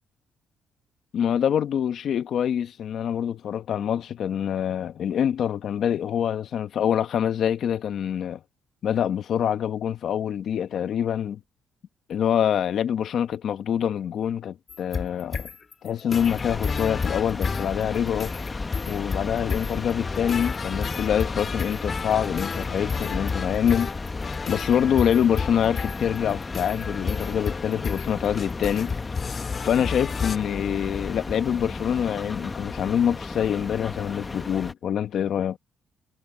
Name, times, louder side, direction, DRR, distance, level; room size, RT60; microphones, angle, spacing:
voice 1, 1.1-8.4 8.8-11.4 12.1-15.5 15.8-18.3 18.9-23.9 24.5-28.9 29.6-35.6, left 9 dB, 65° left, 1.1 m, -25 dB
sound 1, 14.7-30.4, left 5 dB, 40° left, 2.1 m, -32 dB
sound 2, 16.1-34.7, left 3 dB, 25° left, 1.4 m, -33 dB
cardioid pair, 90°, 0 cm